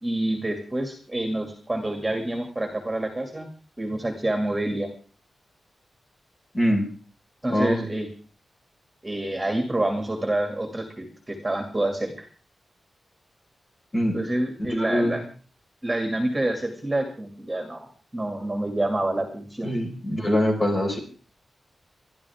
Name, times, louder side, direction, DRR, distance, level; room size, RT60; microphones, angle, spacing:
voice 1, 0.0-3.5 3.8-4.9 7.4-8.1 9.0-12.3 14.1-15.2 15.8-17.9 18.1-19.7, right 1 dB, 10° right, 4 dB, 2.4 m, -27 dB
voice 2, 6.5-6.9 7.5-7.8 13.9-14.2 14.8-15.1 19.6-21.0, equal, 30° left, 1 dB, 5.0 m, -23 dB
29.5 x 12.0 x 3.6 m, 0.39 s
wide cardioid pair, 175°, 0 cm